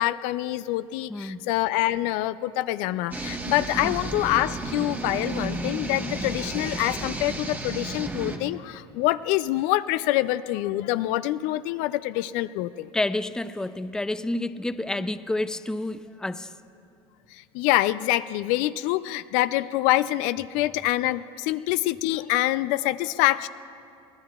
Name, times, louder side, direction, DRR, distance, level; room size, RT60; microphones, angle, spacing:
voice 1, 0.0-12.9 17.3-23.5, left 16 dB, 65° left, 14 dB, 0.4 m, -26 dB
voice 2, 1.1-1.5 3.8-4.0 12.9-16.5, left 2 dB, 5° left, 12 dB, 0.4 m, -29 dB
sound 1, 3.1-8.4, right 2 dB, 15° right, 1.2 m, -32 dB
23.5 x 18.0 x 2.4 m, 2.6 s
hypercardioid pair, 90°, 14 cm